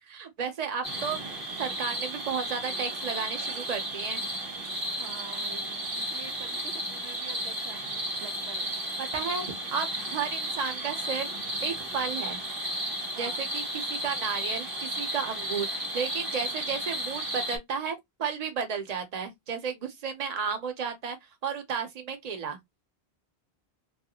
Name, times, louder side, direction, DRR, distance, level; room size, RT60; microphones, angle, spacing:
voice 1, 0.1-4.2 9.0-11.3 11.6-12.4 13.2-21.2 21.4-22.6, right 6 dB, 40° right, 0.8 m, -33 dB
sound 1, 0.8-17.6, right 1 dB, 60° right, 1.3 m, -33 dB
voice 2, 4.9-7.9 8.2-8.7 13.1-13.5, right 5 dB, 80° right, 0.9 m, -47 dB
3.1 x 2.4 x 2.9 m
omnidirectional pair, 1.1 m